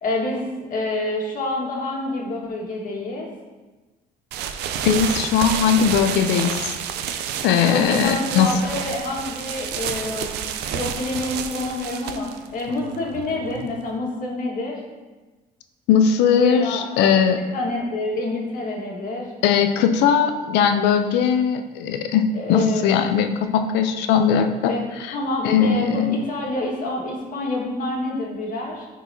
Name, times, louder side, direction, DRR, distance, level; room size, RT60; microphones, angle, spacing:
voice 1, 0.0-3.3 7.6-10.4 10.7-12.3 12.5-14.8 16.3-17.1 17.5-19.3 22.3-23.0 24.6-24.8 25.1-28.9, left 2 dB, 50° left, -2 dB, 1.7 m, -27 dB
sound 1, 4.3-13.9, right 8 dB, 80° right, 0.5 m, -30 dB
voice 2, 4.8-6.6 7.4-8.5 15.9-17.4 19.4-22.2 22.5-24.7 25.1-25.2 25.4-26.2, left 7 dB, 90° left, 7 dB, 0.6 m, -19 dB
9.6 x 4.6 x 2.8 m, 1.2 s
cardioid pair, 110°, 17 cm